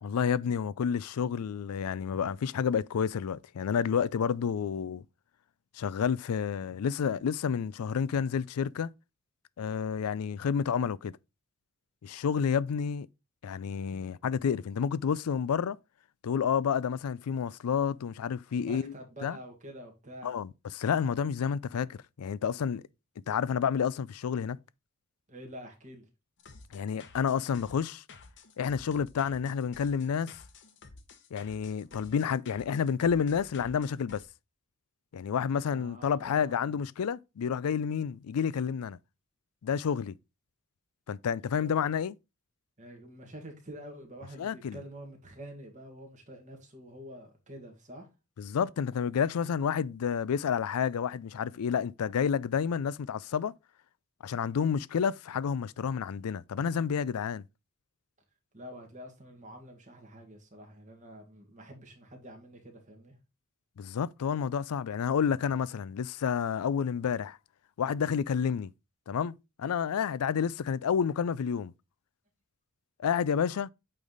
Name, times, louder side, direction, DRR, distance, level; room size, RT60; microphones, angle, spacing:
voice 1, 0.0-5.0 5.8-8.9 9.6-11.1 12.0-13.1 13.4-15.8 16.2-18.9 19.2-19.4 20.2-22.8 23.3-24.6 26.7-28.0 28.6-30.4 31.3-34.2 35.1-39.0 39.6-40.1 41.1-42.1 44.4-44.8 48.4-53.5 54.2-57.4 63.8-67.4 67.8-68.7 69.1-71.7 73.0-73.7, left 7 dB, 85° left, 0.4 m, -30 dB
voice 2, 18.6-20.4 25.3-26.1 35.7-36.8 41.6-41.7 42.8-48.1 58.5-63.2, right 1 dB, 35° right, 1.9 m, -47 dB
sound 1, 26.4-34.2, left 4 dB, 55° left, 0.9 m, -52 dB
8.4 x 3.4 x 3.9 m
head